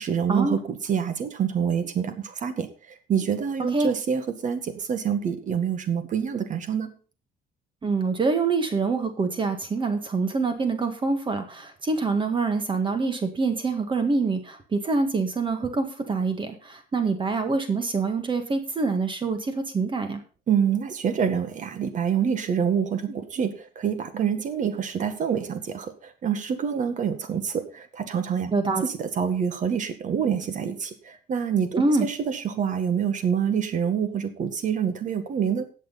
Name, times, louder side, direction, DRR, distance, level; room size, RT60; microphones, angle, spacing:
voice 1, 0.0-2.7 3.1-6.9 20.5-28.5 28.8-35.6, right 7 dB, 50° right, 9 dB, 1.8 m, -26 dB
voice 2, 7.8-20.2 28.5-28.8 31.8-32.1, right 4 dB, 30° right, 7 dB, 1.8 m, -25 dB
18.0 x 6.5 x 4.1 m, 0.36 s
cardioid pair, 110°, 17 cm